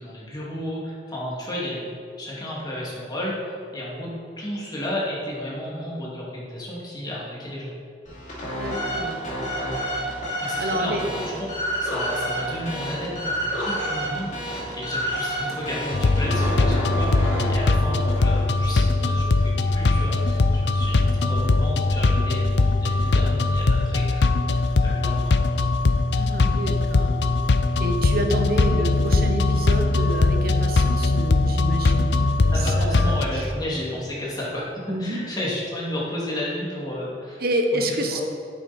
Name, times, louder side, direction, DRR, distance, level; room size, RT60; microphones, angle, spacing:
voice 1, 0.0-1.9 2.2-4.1 4.4-7.7 10.4-25.3 32.5-34.7 35.0-37.4 37.7-38.2, left 1 dB, 25° left, -6 dB, 2.5 m, -32 dB
sound 1, 8.0-18.6, equal, 45° left, 2.8 m, -29 dB
voice 2, 8.6-9.5 10.6-11.1 26.1-27.4 27.8-33.4 34.9-35.2 37.4-38.2, right 1 dB, 60° right, 4 dB, 1.1 m, -28 dB
sound 2, 15.9-33.3, left 3 dB, 70° left, 0.5 m, -21 dB
10.0 x 9.0 x 4.4 m, 2.4 s
head